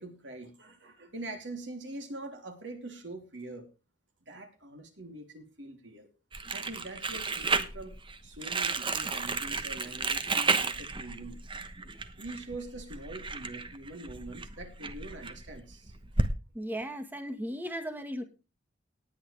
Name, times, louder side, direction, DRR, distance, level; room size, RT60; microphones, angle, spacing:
voice 1, 0.0-3.7 4.3-6.1 6.5-8.0 8.2-11.4 12.2-15.9, right 2 dB, 80° right, 4 dB, 3.3 m, -44 dB
Crumpling crinkling, 6.3-16.3, right 4 dB, 30° right, 1.1 m, -33 dB
voice 2, 16.5-18.2, equal, 10° right, 6 dB, 1.7 m, -36 dB
18.5 x 8.7 x 3.4 m, 0.30 s
head